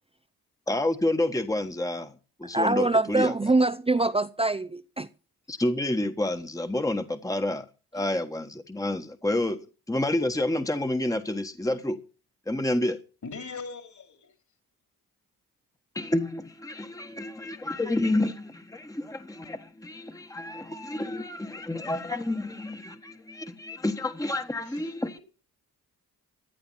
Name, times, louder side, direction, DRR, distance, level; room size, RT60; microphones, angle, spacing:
voice 1, 0.7-2.1 2.4-3.3 5.5-7.7 7.9-12.0 12.5-13.0 15.9-25.2, left 1 dB, 10° left, 1.4 m, -29 dB
voice 2, 2.5-5.1, right 2 dB, 15° right, 0.7 m, -24 dB
voice 3, 13.2-14.3 24.6-24.9, left 4 dB, 50° left, 3.4 m, -40 dB
16.0 x 9.6 x 5.7 m
supercardioid pair, 50°, 38 cm